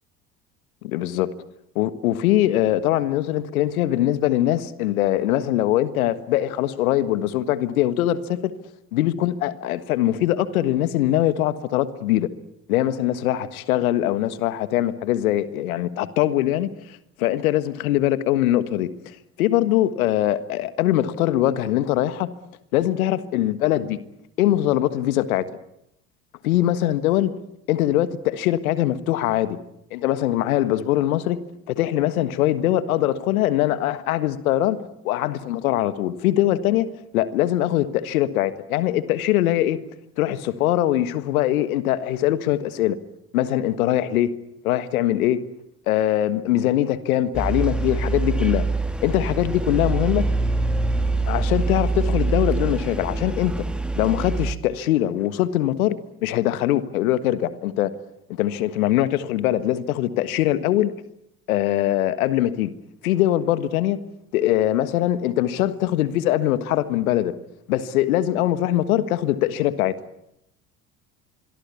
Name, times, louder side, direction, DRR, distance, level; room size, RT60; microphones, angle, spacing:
voice 1, 0.8-1.3 1.7-8.5 8.9-12.3 12.7-18.9 19.4-22.3 22.7-24.0 24.4-25.4 26.4-27.3 27.7-29.6 29.9-31.4 31.7-36.9 37.1-39.8 40.2-43.0 43.3-44.3 44.6-45.4 45.9-48.6 49.0-50.2 51.3-53.5 54.0-55.9 56.2-57.9 58.4-60.9 61.5-62.7 63.0-64.0 64.3-67.3 67.7-69.9, left 13 dB, 75° left, 14 dB, 1.7 m, -22 dB
sound 1, 47.3-54.5, right 3 dB, ahead, 2.2 m, -24 dB
26.0 x 23.0 x 8.5 m, 0.81 s
hypercardioid pair, 65°, 42 cm